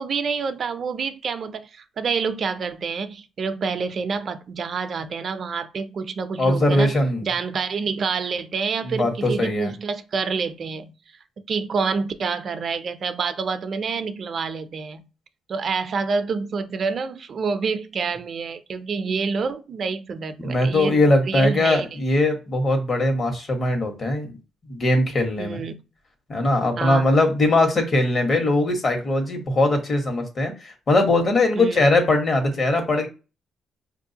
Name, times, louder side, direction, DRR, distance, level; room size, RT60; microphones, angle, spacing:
voice 1, 0.0-6.9 7.2-10.9 11.5-15.1 15.5-20.9 21.2-21.9 25.4-25.8 26.8-27.1 31.5-31.8, right 5 dB, 50° right, 0.5 m, -27 dB
voice 2, 6.4-7.3 8.8-9.7 20.4-24.3 24.7-25.6 26.3-33.1, left 2 dB, 40° left, 1.4 m, -21 dB
4.9 x 2.6 x 2.8 m
cardioid pair, 90°, 0 cm